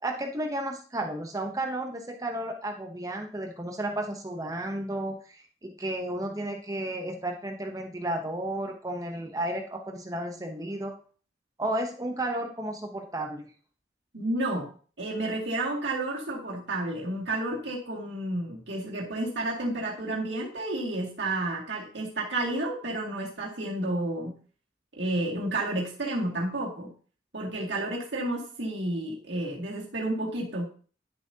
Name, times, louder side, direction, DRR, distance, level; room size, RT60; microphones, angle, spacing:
voice 1, 0.0-10.9 11.6-13.5, right 1 dB, 20° right, 3 dB, 0.8 m, -33 dB
voice 2, 14.1-14.7 15.0-24.3 24.9-26.9 27.3-30.6, right 2 dB, 85° right, -3 dB, 2.2 m, -31 dB
11.0 x 7.2 x 2.8 m, 0.41 s
head